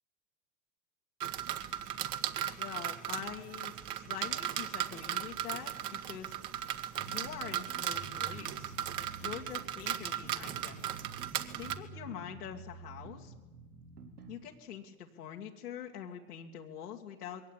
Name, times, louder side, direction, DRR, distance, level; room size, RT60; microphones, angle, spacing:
sound 1, 1.2-11.7, right 11 dB, 45° right, 2.0 m, -37 dB
voice 1, 2.6-6.4 6.9-8.8 9.2-10.9 11.6-13.3 14.3-17.4, left 9 dB, 85° left, -1 dB, 2.3 m, -45 dB
sound 2, 7.0-14.4, right 4 dB, 90° right, 4.6 m, -49 dB
22.0 x 18.0 x 9.9 m, 1.2 s
hypercardioid pair, 100°, 45 cm